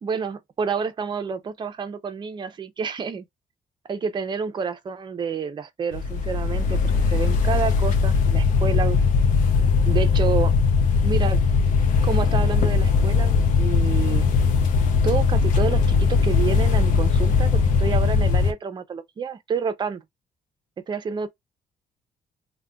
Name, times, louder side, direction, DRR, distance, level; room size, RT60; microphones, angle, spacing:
voice 1, 0.0-3.3 3.9-9.0 9.9-10.5 11.0-11.4 12.0-14.3 15.0-20.0 20.9-21.3, right 6 dB, 35° right, 0.6 m, -29 dB
sound 1, 5.9-18.5, left 5 dB, 80° left, 0.6 m, -20 dB
2.4 x 2.2 x 3.4 m
cardioid pair, 125°, 13 cm